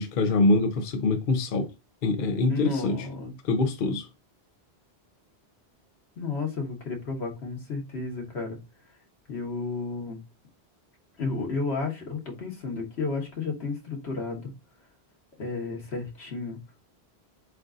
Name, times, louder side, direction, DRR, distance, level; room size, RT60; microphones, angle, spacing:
voice 1, 0.0-1.7 2.0-3.1 3.4-4.1, left 3 dB, 60° left, 0.8 m, -24 dB
voice 2, 2.5-3.3 6.2-8.6 9.3-10.2 11.2-14.5 15.4-16.6, left 4 dB, 85° left, 1.7 m, -32 dB
7.6 x 2.6 x 2.5 m
omnidirectional pair, 1.1 m